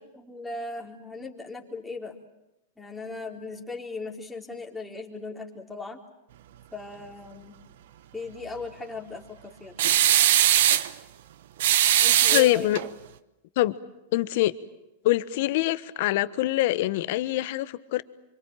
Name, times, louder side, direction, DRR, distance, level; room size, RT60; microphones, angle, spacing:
voice 1, 0.1-2.2 2.8-6.0 6.7-7.5 8.1-10.0 12.0-12.7, left 3 dB, 5° left, 0 dB, 4.1 m, -38 dB
sound 1, 9.8-10.9 11.6-12.9, right 12 dB, 65° right, 1.1 m, -20 dB
voice 2, 12.3-12.8 13.6-13.8 14.1-14.5 15.0-18.0, left 16 dB, 60° left, 14 dB, 1.3 m, -24 dB
26.0 x 25.0 x 9.1 m, 0.92 s
hypercardioid pair, 115°, 0 cm